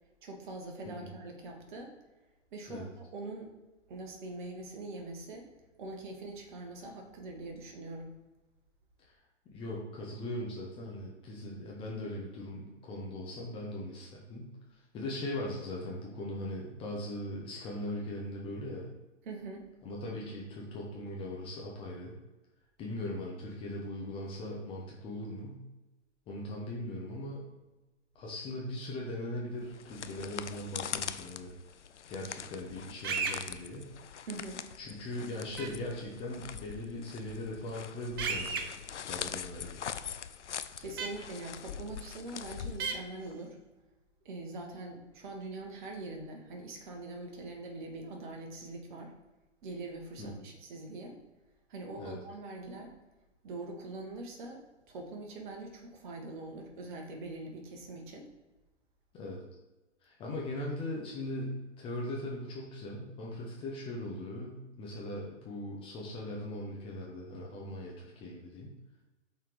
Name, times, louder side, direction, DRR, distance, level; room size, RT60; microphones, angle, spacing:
voice 1, 0.2-1.9 2.5-3.5 3.9-5.5 5.8-8.2 19.2-19.6 34.3-34.6 40.8-43.6 44.2-49.1 49.6-51.2 51.7-52.9 53.4-58.3, right 2 dB, 40° right, 2 dB, 1.7 m, -43 dB
voice 2, 9.5-18.9 19.8-22.1 22.8-25.6 26.3-27.5 28.1-31.5 32.1-33.9 34.8-38.6 39.0-39.8 50.2-50.5 52.0-52.2 59.1-59.4 60.0-68.7, left 1 dB, 15° left, -3 dB, 0.9 m, -39 dB
sound 1, 29.6-43.3, left 8 dB, 70° left, 0.5 m, -43 dB
sound 2, 33.0-33.4 35.6-35.7 38.2-38.6 41.0-41.1 42.8-42.9, right 5 dB, 20° right, 0.4 m, -32 dB
5.8 x 4.4 x 4.9 m, 1.1 s
figure-of-eight pair, 120°, 36 cm